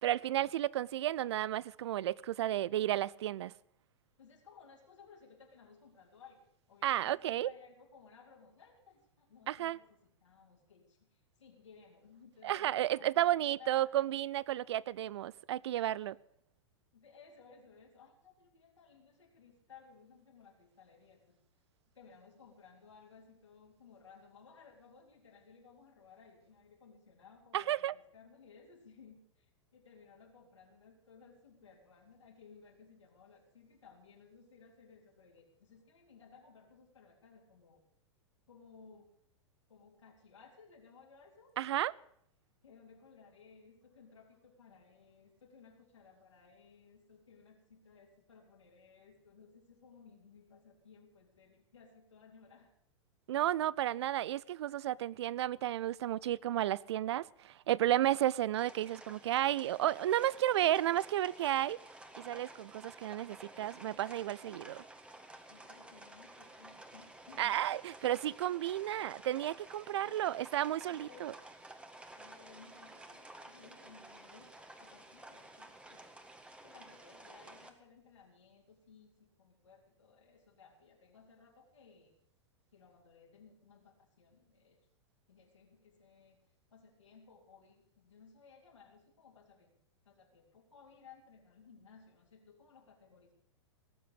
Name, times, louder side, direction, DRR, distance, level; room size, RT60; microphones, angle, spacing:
voice 1, 0.0-3.5 6.8-7.5 9.5-9.8 12.4-16.2 27.5-27.9 41.6-41.9 53.3-61.8 62.2-64.8 67.4-71.3, right 13 dB, 65° right, 0.5 m, -32 dB
voice 2, 4.2-13.9 16.9-21.4 21.9-37.8 38.5-39.1 39.7-41.5 42.6-52.7 53.9-54.2 54.4-54.5 54.9-55.1 65.5-67.6 70.0-70.5 70.9-71.4 72.2-76.1 76.6-82.2 82.7-84.8 85.3-86.4 86.7-89.8 90.0-93.3, left 5 dB, 80° left, 3.7 m, -59 dB
sound 1, 58.6-77.7, right 2 dB, 5° right, 1.6 m, -53 dB
18.0 x 7.7 x 8.0 m
figure-of-eight pair, 100°, 15 cm